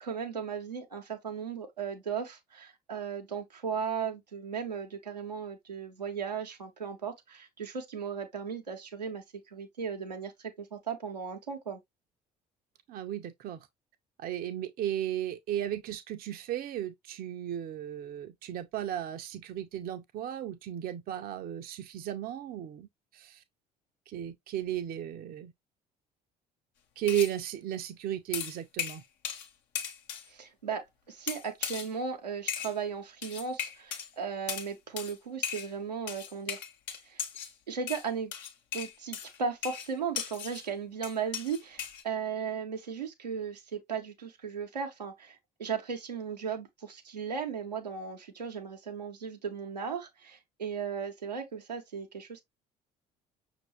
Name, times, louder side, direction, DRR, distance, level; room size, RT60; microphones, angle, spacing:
voice 1, 0.0-10.3 10.6-11.8 30.3-36.6 37.1-37.2 37.7-38.3 38.7-52.4, right 6 dB, 85° right, 0.9 m, -36 dB
voice 2, 12.9-13.6 14.2-22.9 23.1-23.4 24.1-25.5 27.0-29.0, right 11 dB, 45° right, 0.7 m, -35 dB
sound 1, 27.1-27.4 28.3-29.5 29.7-30.3 31.3-31.9 32.5-32.8 33.2-34.1 34.5-34.7 35.0-35.1 35.4-35.7 36.1-37.5 37.9-40.7 41.0-42.0, left 8 dB, 60° left, 1.1 m, -37 dB
6.0 x 2.6 x 3.1 m
figure-of-eight pair, 55°, 21 cm